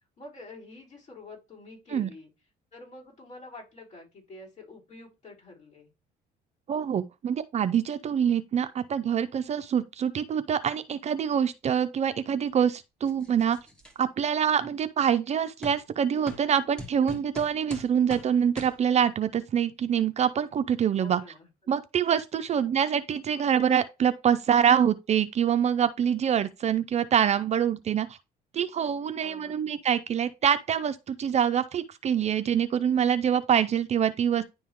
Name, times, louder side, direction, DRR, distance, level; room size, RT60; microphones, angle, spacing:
voice 1, 0.2-2.3 2.7-5.9 21.0-21.7 22.5-22.8 29.2-29.9, left 2 dB, 45° left, 4.4 m, -47 dB
voice 2, 6.7-13.6 14.0-21.2 21.7-28.2 28.5-34.4, right 8 dB, 40° right, 0.5 m, -25 dB
sound 1, 13.1-13.9 14.6-14.7 15.6-15.8 16.3-16.5 16.8-18.3 18.6-18.8, left 1 dB, 5° left, 1.4 m, -42 dB
10.0 x 3.6 x 3.0 m
cardioid pair, 110°, 17 cm